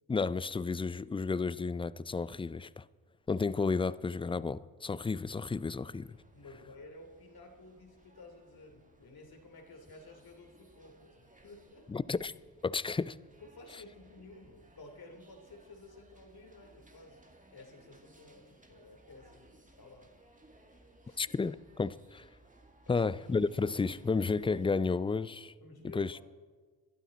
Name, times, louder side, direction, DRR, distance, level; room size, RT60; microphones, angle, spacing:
voice 1, 0.1-2.9 3.3-6.2 11.9-12.3 12.6-13.2 21.2-22.3 22.9-25.5 25.9-26.2, left 4 dB, 15° left, 0.3 m, -32 dB
sound 1, 5.7-24.7, right 2 dB, 15° right, 1.9 m, -61 dB
voice 2, 6.3-11.9 13.4-17.2 17.5-20.1 21.0-21.2 22.9-23.2 25.6-26.2, left 2 dB, 55° left, 3.0 m, -53 dB
21.0 x 12.0 x 4.2 m
supercardioid pair, 55°, 44 cm